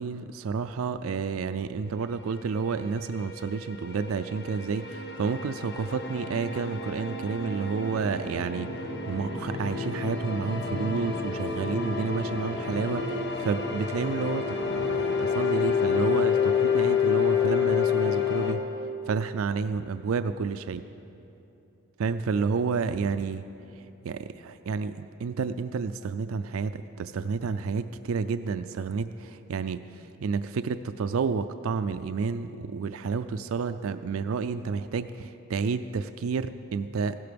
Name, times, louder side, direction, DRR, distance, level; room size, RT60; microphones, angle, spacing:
voice 1, 0.0-18.6 19.1-20.8 22.0-23.4 24.0-37.2, right 5 dB, 90° right, 11 dB, 0.4 m, -30 dB
sound 1, 2.4-18.5, left 6 dB, 55° left, 1.4 m, -29 dB
16.0 x 12.5 x 5.2 m, 2.9 s
head